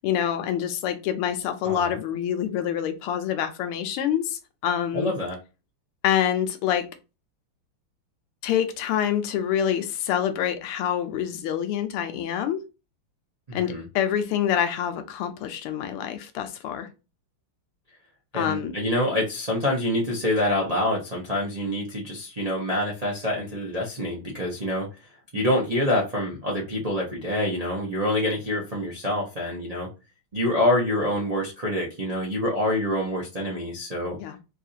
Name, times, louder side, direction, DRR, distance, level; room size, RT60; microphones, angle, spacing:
voice 1, 0.0-5.1 6.0-6.9 8.4-12.6 13.5-16.9 18.3-18.7 34.2-34.4, left 9 dB, 90° left, 8 dB, 1.6 m, -26 dB
voice 2, 4.9-5.4 13.5-13.8 18.3-24.9 25.3-29.9 30.3-34.2, left 1 dB, 80° right, -4 dB, 0.3 m, -26 dB
4.7 x 2.4 x 2.7 m, 0.29 s
omnidirectional pair, 2.4 m